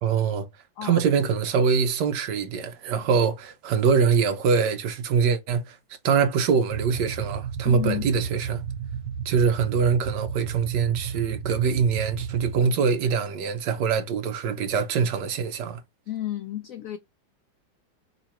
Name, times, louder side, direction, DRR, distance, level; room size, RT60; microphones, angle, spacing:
voice 1, 0.0-0.5 0.8-5.8 6.0-8.6 9.2-15.8, right 6 dB, 70° right, 1.3 m, -24 dB
sound 1, 6.7-12.6, right 7 dB, 90° right, 1.5 m, -33 dB
voice 2, 7.6-8.1 16.1-17.0, left 12 dB, 80° left, 0.7 m, -31 dB
5.2 x 3.0 x 2.9 m
omnidirectional pair, 2.0 m